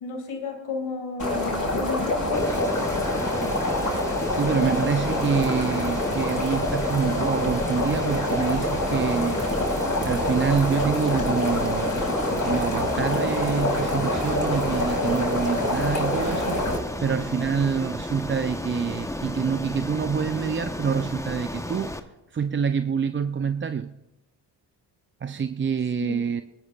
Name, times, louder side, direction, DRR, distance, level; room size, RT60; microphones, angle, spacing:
voice 1, 0.0-2.6 26.0-26.2, left 4 dB, 85° left, 3 dB, 2.4 m, -33 dB
sound 1, 1.2-16.8, left 1 dB, 40° left, 4.8 m, -26 dB
Ocean, 2.3-22.0, left 1 dB, 5° left, 1.0 m, -33 dB
voice 2, 4.3-9.4 10.0-12.1 12.4-22.0 22.3-23.9 25.2-26.4, right 6 dB, 25° right, 11 dB, 0.4 m, -26 dB
21.5 x 10.5 x 2.4 m, 1.0 s
supercardioid pair, 45°, 48 cm